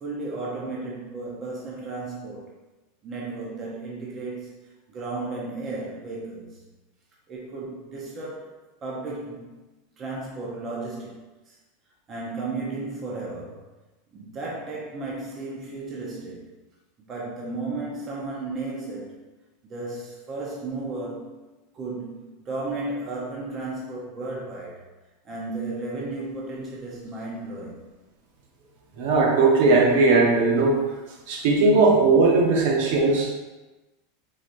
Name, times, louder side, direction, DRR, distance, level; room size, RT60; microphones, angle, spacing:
voice 1, 0.0-2.5 3.0-4.6 4.9-6.5 7.3-8.5 8.8-9.6 10.0-11.2 11.5-11.6 12.1-13.6 14.1-16.5 17.1-19.2 19.6-21.3 21.7-24.8 25.2-27.8, right 3 dB, 30° right, -4 dB, 0.8 m, -34 dB
voice 2, 29.0-30.8 31.3-33.3, right 3 dB, 70° right, -1 dB, 0.9 m, -18 dB
4.0 x 3.0 x 2.6 m, 1.1 s
supercardioid pair, 135°, 0 cm